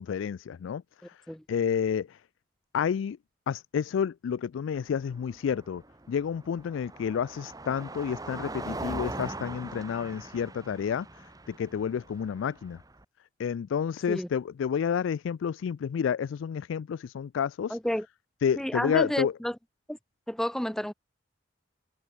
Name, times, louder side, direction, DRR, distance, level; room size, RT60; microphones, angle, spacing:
voice 1, 0.0-1.2 1.5-2.2 2.7-3.2 3.5-5.8 6.1-12.8 13.4-17.8 18.4-19.4, left 7 dB, 90° left, 0.3 m, -30 dB
Car passing by, 4.8-13.0, right 2 dB, 20° right, 1.6 m, -41 dB
voice 2, 17.7-18.1 18.6-19.5 19.9-20.0 20.3-20.9, equal, ahead, 0.4 m, -30 dB
head